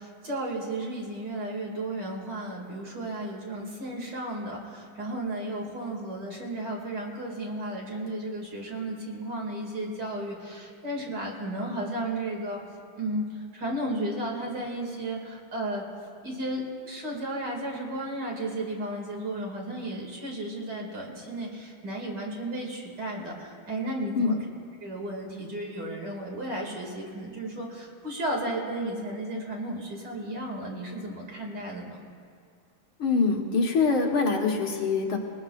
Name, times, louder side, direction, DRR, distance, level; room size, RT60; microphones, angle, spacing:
voice 1, 0.0-12.6 13.0-13.3 13.5-15.8 16.2-24.4 24.8-32.0, right 1 dB, 55° right, -1 dB, 2.9 m, -34 dB
voice 2, 33.0-35.2, left 4 dB, 75° left, 0 dB, 2.3 m, -24 dB
22.5 x 20.0 x 2.5 m, 2.2 s
omnidirectional pair, 2.3 m